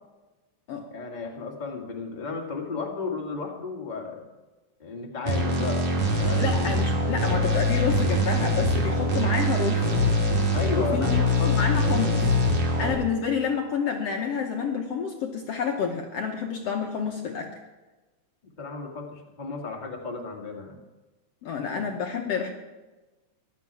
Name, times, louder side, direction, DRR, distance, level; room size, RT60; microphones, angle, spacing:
voice 1, 0.9-4.2 4.8-5.8 6.2-6.8 10.5-11.6 18.6-20.8 21.7-21.9, left 4 dB, 20° left, 0 dB, 1.6 m, -34 dB
sound 1, 5.3-12.9, left 1 dB, 55° right, 4.0 m, -23 dB
voice 2, 6.4-9.9 10.7-12.3 12.8-17.5 21.4-22.5, left 6 dB, 65° left, 2 dB, 1.8 m, -29 dB
16.0 x 11.5 x 4.8 m, 1.2 s
omnidirectional pair, 3.5 m